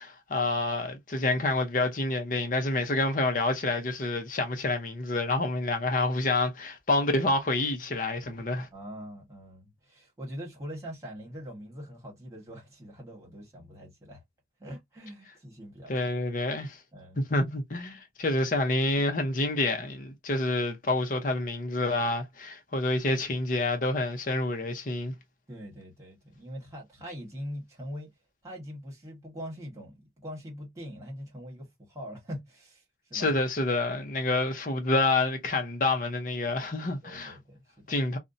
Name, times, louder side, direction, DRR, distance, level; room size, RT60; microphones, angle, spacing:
voice 1, 0.0-8.7 15.9-16.8 17.2-25.1 33.1-37.4 37.9-38.2, left 2 dB, 45° left, 0.6 m, -28 dB
voice 2, 8.7-14.2 14.6-15.9 16.9-17.2 25.5-28.1 28.4-32.8 33.1-33.4 37.0-38.0, equal, 15° right, 1.2 m, -42 dB
2.6 x 2.1 x 2.5 m
head